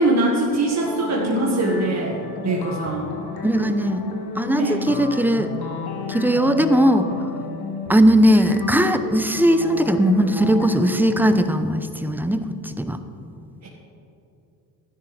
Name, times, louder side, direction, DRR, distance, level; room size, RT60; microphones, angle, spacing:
voice 1, 0.0-2.2 2.4-3.1 4.6-4.8 13.6-13.7, right 2 dB, 35° right, -3 dB, 1.7 m, -22 dB
sound 1, 0.7-11.4, left 5 dB, 50° left, 1.6 m, -32 dB
voice 2, 3.4-4.0 4.4-5.5 6.1-7.1 7.9-12.4 12.7-13.0, equal, 5° right, 9 dB, 0.7 m, -18 dB
12.5 x 10.5 x 3.3 m, 2.8 s
supercardioid pair, 60°, 47 cm